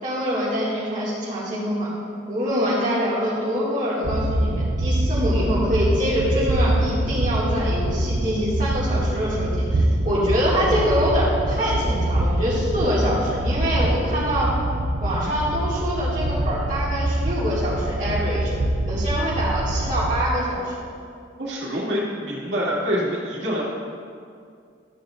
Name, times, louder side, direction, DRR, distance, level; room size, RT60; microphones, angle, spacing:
voice 1, 0.0-1.9 2.3-14.5 15.0-18.5 18.9-20.7, equal, 40° right, -8 dB, 2.2 m, -24 dB
sound 1, 4.0-20.3, right 1 dB, 85° right, 0.6 m, -24 dB
voice 2, 21.4-23.6, equal, 65° right, -6 dB, 2.3 m, -26 dB
13.5 x 8.7 x 2.6 m, 2.3 s
head